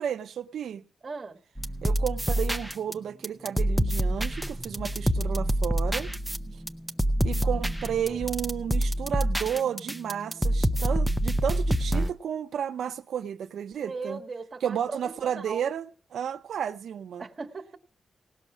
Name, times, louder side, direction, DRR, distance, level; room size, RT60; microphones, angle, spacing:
voice 1, 0.0-0.8 1.8-6.1 6.5-6.6 7.2-14.2 14.6-17.2, right 8 dB, 85° right, 0.6 m, -32 dB
voice 2, 1.0-1.4 7.4-7.6 13.8-15.6 17.2-17.8, right 4 dB, 30° right, 1.4 m, -38 dB
sound 1, 1.6-2.9 3.2-12.1, right 1 dB, ahead, 0.5 m, -27 dB
18.0 x 6.4 x 6.0 m
wide cardioid pair, 170°, 0 cm